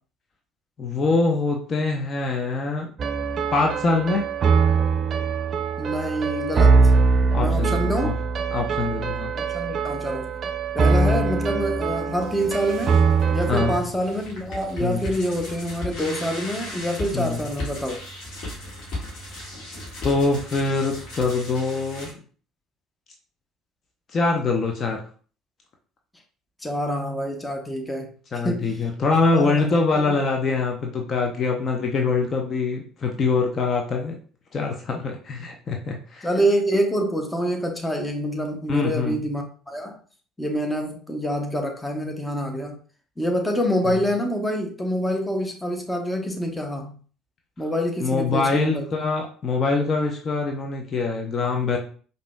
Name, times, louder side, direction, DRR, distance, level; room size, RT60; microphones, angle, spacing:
voice 1, 0.8-2.9 3.5-4.3 7.3-8.1 8.5-9.3 13.5-13.8 14.8-15.0 17.1-17.4 20.0-22.2 24.1-25.0 28.3-34.2 34.5-36.3 38.7-39.2 43.8-44.0 48.0-51.8, left 3 dB, 40° left, 1 dB, 0.6 m, -24 dB
sound 1, 3.0-13.8, right 4 dB, 45° right, 0.3 m, -22 dB
voice 2, 5.8-6.9 7.3-8.1 9.3-10.3 10.7-13.0 13.3-18.0 26.6-28.1 28.4-28.7 29.3-30.2 36.2-40.0 40.4-42.7 43.2-46.9 47.6-48.9, equal, 10° left, 4 dB, 0.8 m, -26 dB
sound 2, 12.1-22.1, left 1 dB, 55° left, 1.6 m, -36 dB
4.9 x 2.7 x 2.2 m, 0.41 s
figure-of-eight pair, 55°, 0 cm